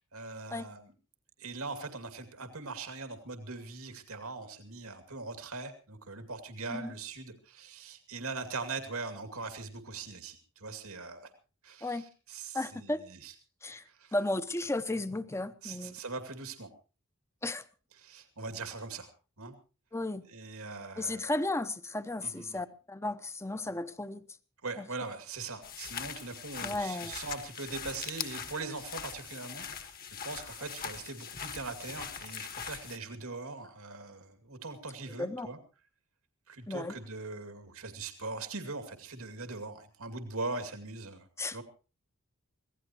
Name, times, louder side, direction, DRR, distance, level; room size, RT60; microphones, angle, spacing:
voice 1, 0.1-0.9 1.4-11.3 11.6-13.3 13.9-14.1 15.6-16.7 17.9-19.1 19.4-19.5 20.3-21.3 22.2-22.6 24.6-29.9 30.2-35.6 36.5-41.6, right 3 dB, 90° right, 7 dB, 2.5 m, -41 dB
voice 2, 12.5-13.0 13.6-13.8 14.1-16.0 17.4-17.6 19.9-20.2 21.0-24.2 24.8-24.9 26.6-27.2 35.2-35.5 36.7-36.9 41.4-41.6, left 2 dB, 15° left, 12 dB, 0.8 m, -34 dB
sound 1, 25.6-33.0, left 7 dB, 45° left, 1.5 m, -41 dB
25.5 x 17.0 x 3.0 m, 0.34 s
head